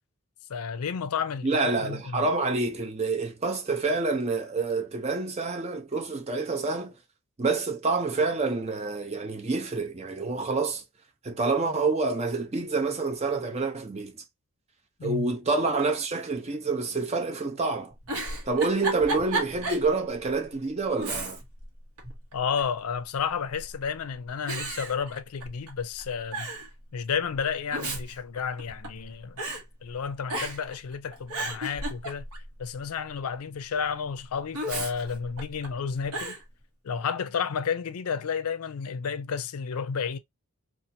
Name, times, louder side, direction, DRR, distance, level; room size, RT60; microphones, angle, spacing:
voice 1, 0.5-2.3 15.0-15.3 22.3-26.5 26.9-29.4 29.8-32.2 32.6-36.4 36.8-40.2, left 6 dB, 90° left, 0.4 m, -31 dB
voice 2, 1.4-7.0 7.4-10.8 11.2-14.1 15.0-17.9 18.4-21.4, right 3 dB, 30° right, 0.5 m, -27 dB
Giggle, 18.0-19.9 20.3-20.4 21.0-21.7 22.0-22.8 23.6-24.0 24.5-25.7 26.0-26.1 26.3-26.7 27.5-29.0 29.4-29.6 30.3-30.8 31.1-32.5 34.5-35.7 36.1-36.4, right 2 dB, 85° right, 1.0 m, -33 dB
2.8 x 2.4 x 2.6 m
head